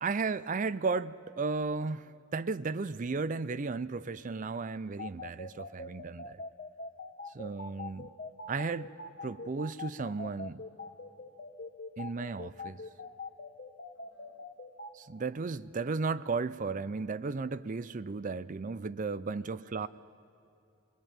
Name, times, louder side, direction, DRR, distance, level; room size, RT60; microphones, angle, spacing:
voice 1, 0.0-6.4 7.3-8.1 8.5-8.9 9.2-10.6 12.0-12.8 14.9-19.9, right 4 dB, 40° right, 0.5 m, -34 dB
sound 1, 5.0-14.9, left 3 dB, 45° left, 1.3 m, -42 dB
voice 2, 13.9-14.4 19.2-19.9, right 1 dB, 85° right, 6.6 m, -69 dB
24.5 x 20.5 x 8.9 m
head